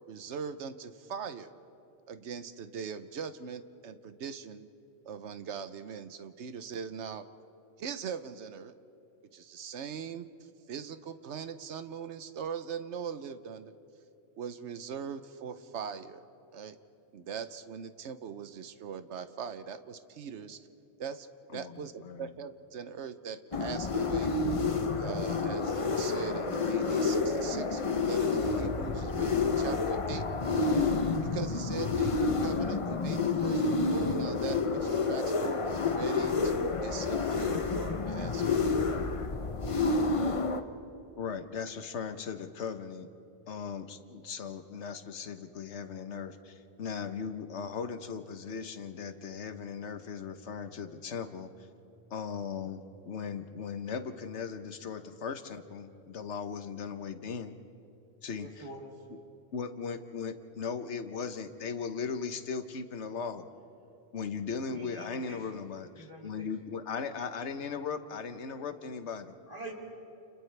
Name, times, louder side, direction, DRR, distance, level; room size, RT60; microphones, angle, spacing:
voice 1, 0.1-1.5 2.1-4.7 5.0-7.2 7.8-8.7 9.3-10.3 10.7-13.7 14.4-16.2 16.5-16.8 17.1-20.6 21.0-21.3 21.5-24.5 25.0-30.3 30.6-30.8 31.2-38.7, right 7 dB, 85° right, 11 dB, 1.1 m, -41 dB
sound 1, 23.5-40.6, left 4 dB, 35° left, 0.8 m, -29 dB
voice 2, 41.2-43.1 43.5-51.5 52.1-57.5 58.2-58.6 59.5-63.4 64.1-69.3, left 6 dB, 90° left, 9 dB, 1.3 m, -38 dB
voice 3, 58.4-59.0 64.6-65.6 65.9-66.5 69.5-69.7, right 1 dB, 35° right, -1 dB, 2.8 m, -45 dB
30.0 x 29.5 x 3.3 m, 2.7 s
omnidirectional pair, 1.1 m